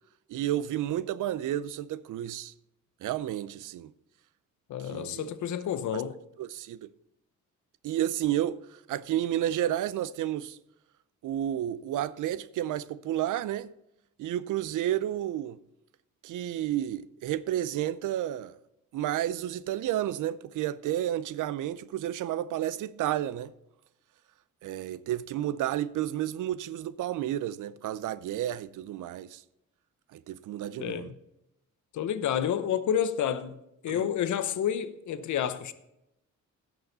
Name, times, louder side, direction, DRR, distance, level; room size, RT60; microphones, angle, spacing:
voice 1, 0.3-2.5 3.0-3.9 4.8-5.5 5.9-6.0 6.4-6.9 7.8-10.6 11.2-13.7 14.2-15.6 16.2-18.6 18.9-23.5 24.6-29.4 30.1-31.1 33.9-34.1, right 12 dB, 80° right, 0.5 m, -31 dB
voice 2, 4.7-6.2 30.8-31.1 31.9-33.6 33.8-35.7, left 9 dB, 70° left, 0.8 m, -29 dB
16.0 x 6.4 x 4.0 m
wide cardioid pair, 170°, 31 cm